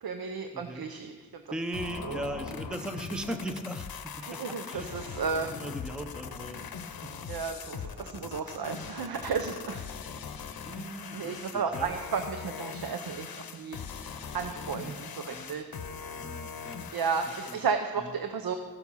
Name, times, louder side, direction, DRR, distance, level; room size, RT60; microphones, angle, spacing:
voice 1, 0.0-1.1 2.0-2.2 4.2-5.5 7.3-9.8 11.1-13.8 14.3-15.7 16.9-18.6, right 5 dB, 65° right, 6 dB, 0.8 m, -33 dB
voice 2, 0.5-0.9 1.5-3.9 4.2-6.6 7.0-7.3 10.6-12.0 14.8-15.6 16.2-16.9 17.3-17.6 18.0-18.1, right 1 dB, ahead, 7 dB, 0.6 m, -39 dB
sound 1, 1.7-17.7, left 6 dB, 65° left, 0.8 m, -41 dB
15.5 x 7.1 x 5.5 m, 1.4 s
wide cardioid pair, 110°, 39 cm